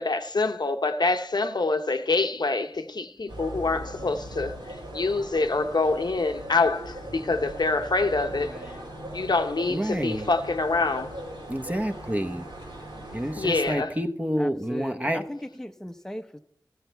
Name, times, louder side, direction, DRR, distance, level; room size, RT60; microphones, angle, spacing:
voice 1, 0.0-4.6 4.9-8.8 9.1-11.2 13.4-13.9, left 3 dB, 60° left, 0.8 m, -26 dB
sound 1, 3.3-13.7, right 1 dB, 85° right, 2.8 m, -39 dB
voice 2, 8.4-8.9 14.4-16.4, equal, 5° left, 0.7 m, -37 dB
voice 3, 9.7-10.3 11.5-12.5 13.1-15.2, equal, 20° right, 1.0 m, -28 dB
14.5 x 8.2 x 4.5 m
wide cardioid pair, 45°, 8 cm